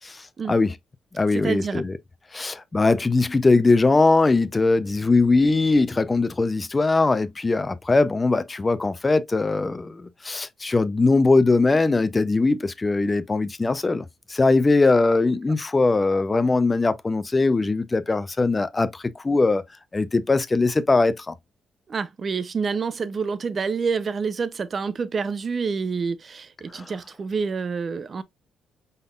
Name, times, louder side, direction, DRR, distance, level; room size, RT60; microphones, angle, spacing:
voice 1, 0.0-0.7 1.1-2.0 2.3-14.0 14.3-19.6 19.9-21.3 26.7-26.9, left 3 dB, 25° left, 0.6 m, -21 dB
voice 2, 1.3-1.8 21.9-28.2, right 5 dB, 40° right, 0.6 m, -27 dB
5.3 x 3.9 x 2.4 m
cardioid pair, 90°, 0 cm